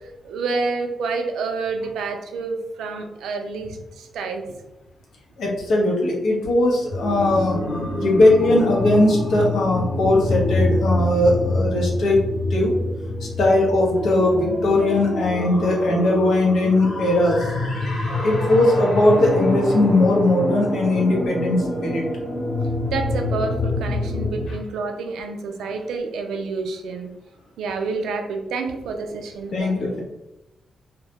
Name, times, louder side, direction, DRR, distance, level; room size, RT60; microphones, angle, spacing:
voice 1, 0.2-4.6 22.9-27.1 27.6-30.0, right 4 dB, 90° right, 5 dB, 0.3 m, -28 dB
voice 2, 5.4-7.6 8.0-12.2 12.5-12.7 13.4-17.5 18.2-22.0 29.5-30.0, left 2 dB, 75° left, -1 dB, 0.7 m, -19 dB
sound 1, 6.9-24.5, left 1 dB, 55° left, 0.9 m, -26 dB
2.2 x 2.0 x 2.8 m, 0.94 s
cardioid pair, 80°, 0 cm